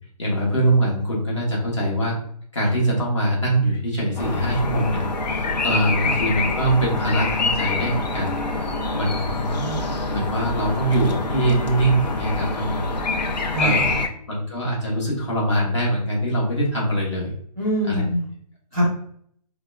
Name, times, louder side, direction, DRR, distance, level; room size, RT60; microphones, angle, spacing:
voice 1, 0.2-2.1 2.5-8.3 8.6-9.6 10.1-12.9 13.3-13.9 14.3-17.3 17.9-18.0, right 1 dB, 45° left, -4 dB, 1.2 m, -23 dB
sound 1, 4.2-14.1, left 3 dB, 80° left, 0.6 m, -25 dB
voice 2, 9.3-9.9 13.5-13.8 17.6-18.2 18.7-18.8, right 1 dB, 5° left, -11 dB, 0.8 m, -25 dB
4.6 x 2.1 x 2.3 m, 0.62 s
hypercardioid pair, 180°, 21 cm